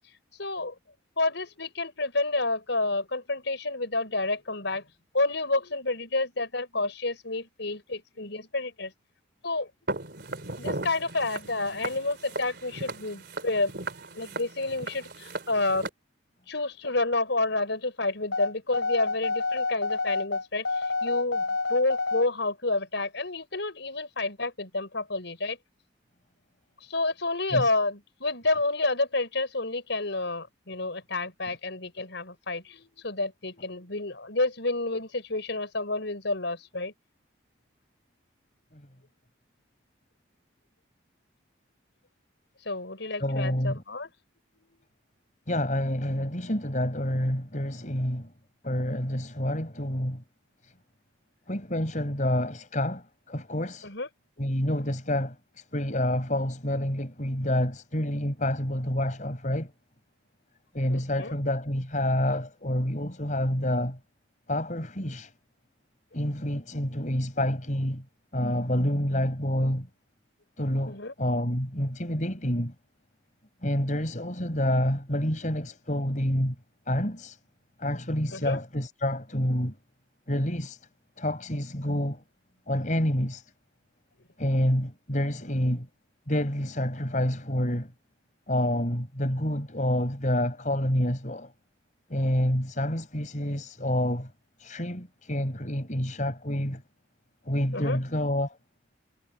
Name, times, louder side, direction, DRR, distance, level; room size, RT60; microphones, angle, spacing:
voice 1, 0.4-0.7 1.2-4.8 5.1-8.9 9.4-9.7 10.6-13.7 14.1-15.9 16.5-25.6 26.9-36.9 42.6-44.1 53.8-54.1 60.9-61.3 70.9-71.1 78.3-78.6 97.7-98.0, left 2 dB, 65° left, 4.9 m, -29 dB
Walk footsteps, 9.9-15.9, right 2 dB, 55° right, 3.7 m, -37 dB
sound 1, 18.3-22.3, left 3 dB, 90° left, 4.6 m, -28 dB
voice 2, 43.2-43.8 45.5-48.3 48.6-50.2 50.6-50.7 51.5-53.9 54.4-59.7 60.7-64.0 64.5-65.3 66.1-68.0 68.3-69.9 70.6-72.7 73.6-76.6 76.9-77.4 77.8-79.8 80.3-80.8 81.2-82.2 82.7-83.4 84.4-85.9 86.3-87.9 88.5-91.5 92.1-94.3 94.6-96.8 97.5-98.6, left 1 dB, 40° left, 5.4 m, -28 dB
head